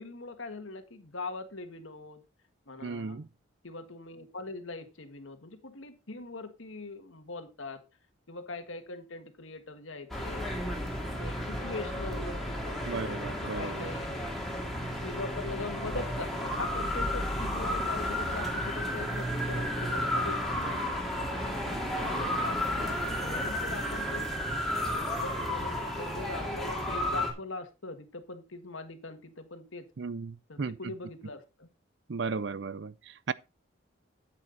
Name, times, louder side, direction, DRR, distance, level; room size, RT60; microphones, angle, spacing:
voice 1, 0.0-2.2 2.7-3.2 3.6-7.8 8.3-10.5 11.0-14.1 14.9-20.8 21.3-24.3 24.9-29.9 30.5-31.7, left 3 dB, 80° left, 1.6 m, -42 dB
voice 2, 2.8-3.3 12.9-13.9 30.0-30.9 32.1-33.3, right 4 dB, 60° right, 0.5 m, -35 dB
sound 1, 10.1-27.3, equal, ahead, 2.4 m, -32 dB
8.8 x 8.7 x 3.9 m
head